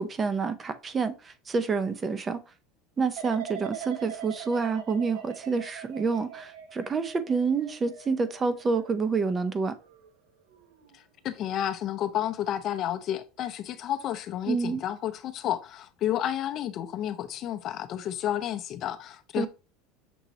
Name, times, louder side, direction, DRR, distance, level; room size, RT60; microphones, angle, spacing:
voice 1, 0.0-2.4 3.0-9.7 14.5-14.8 19.4-19.5, right 4 dB, 25° right, 0.5 m, -28 dB
sound 1, 3.2-10.1 10.5-10.9, right 9 dB, 80° right, 0.8 m, -43 dB
voice 2, 10.9-19.5, left 11 dB, 45° left, 0.5 m, -31 dB
6.1 x 2.9 x 2.8 m
supercardioid pair, 120°, 0 cm